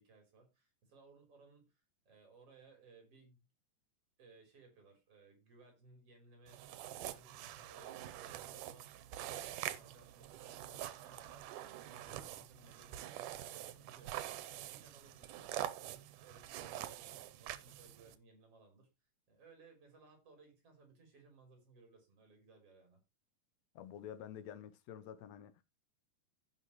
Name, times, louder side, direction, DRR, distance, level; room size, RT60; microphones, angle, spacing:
voice 1, 0.0-3.4 4.2-18.9 19.3-23.0, right 3 dB, 50° right, 4.6 m, -63 dB
sound 1, 6.5-18.2, right 13 dB, 85° right, 2.3 m, -45 dB
voice 2, 23.7-25.6, left 9 dB, 70° left, 1.8 m, -49 dB
16.0 x 5.8 x 3.0 m
omnidirectional pair, 3.6 m